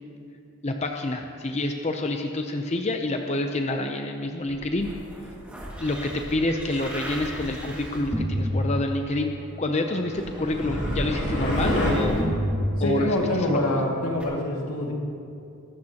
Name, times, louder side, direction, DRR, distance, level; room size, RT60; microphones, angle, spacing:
voice 1, 0.6-4.9 5.8-12.3 12.8-13.6, left 2 dB, 30° left, 4 dB, 0.6 m, -28 dB
sound 1, 4.5-9.4 10.1-13.4 14.2-14.3, equal, 5° right, 2.0 m, -30 dB
sound 2, 10.0-11.9, left 1 dB, 60° left, 4.1 m, -29 dB
voice 2, 12.8-14.9, left 1 dB, 80° left, -1 dB, 2.3 m, -25 dB
23.0 x 12.5 x 2.9 m, 2.5 s
head